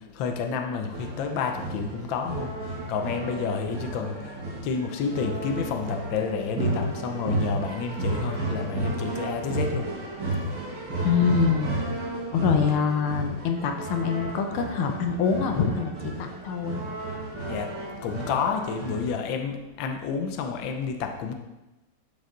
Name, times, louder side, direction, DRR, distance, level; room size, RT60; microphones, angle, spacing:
voice 1, 0.0-9.9 17.5-21.3, left 5 dB, 70° left, 5 dB, 1.5 m, -30 dB
sound 1, 0.9-19.1, right 2 dB, 60° right, 3.1 m, -32 dB
voice 2, 11.0-11.7 12.3-16.8, left 6 dB, 85° left, 4 dB, 1.7 m, -25 dB
11.5 x 5.6 x 3.9 m, 1.0 s
omnidirectional pair, 2.3 m